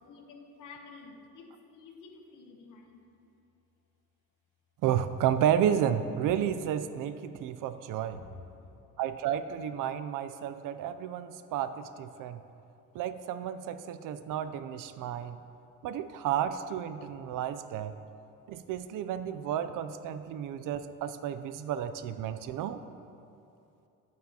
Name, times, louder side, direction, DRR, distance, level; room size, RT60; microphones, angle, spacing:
voice 1, 0.0-3.1 8.1-8.8, left 4 dB, 60° left, 3 dB, 1.1 m, -50 dB
voice 2, 4.8-8.2 9.0-12.4 12.9-15.4 15.8-17.9 18.5-22.8, right 9 dB, 65° right, 11 dB, 0.5 m, -32 dB
11.0 x 9.2 x 2.9 m, 2.7 s
cardioid pair, 140°, 34 cm